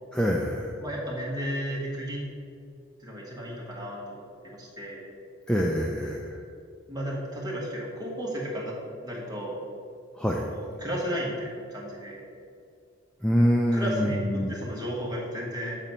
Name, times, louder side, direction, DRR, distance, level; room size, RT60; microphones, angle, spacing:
voice 1, 0.1-0.7 5.5-6.4 10.2-10.4 13.2-14.5, equal, 5° left, -1 dB, 0.3 m, -25 dB
voice 2, 0.8-2.2 3.0-5.1 6.9-8.8 9.0-9.6 10.4-12.2 13.4-15.8, equal, 20° right, -5 dB, 1.6 m, -34 dB
7.3 x 4.0 x 5.4 m, 2.3 s
head